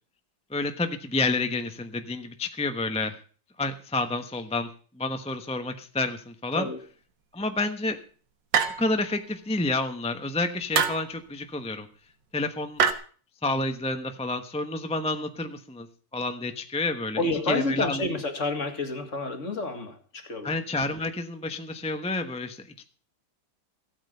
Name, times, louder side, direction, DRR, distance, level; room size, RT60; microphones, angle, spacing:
voice 1, 0.5-3.1 3.6-4.7 5.0-6.7 7.3-8.0 8.8-11.9 12.3-12.8 13.4-15.9 16.1-17.2 17.5-18.0 20.4-22.8, left 2 dB, 5° left, 0.8 m, -29 dB
voice 2, 6.5-6.8 17.2-20.6, left 2 dB, 45° left, 2.3 m, -29 dB
sound 1, 8.5-9.1 10.7-11.1 12.8-12.9, right 7 dB, 90° right, 1.9 m, -24 dB
16.0 x 8.9 x 6.7 m
omnidirectional pair, 1.9 m